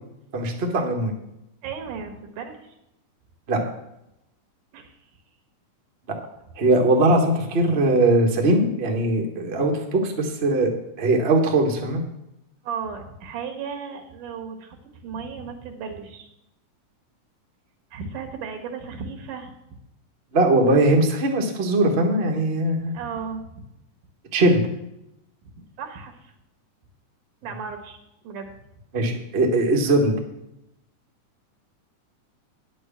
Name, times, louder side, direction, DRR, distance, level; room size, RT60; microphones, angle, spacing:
voice 1, 0.3-1.1 3.5-3.6 6.6-10.7 11.0-12.0 20.3-22.9 24.3-24.6 28.9-30.1, right 2 dB, 40° right, 1 dB, 0.9 m, -20 dB
voice 2, 1.6-2.8 4.7-5.0 12.6-14.8 15.0-16.3 17.9-19.5 22.9-23.6 25.4-25.5 25.8-26.3 27.4-28.0 28.2-28.5, right 6 dB, 80° right, 4 dB, 2.9 m, -35 dB
9.9 x 6.3 x 7.3 m, 0.85 s
omnidirectional pair, 3.6 m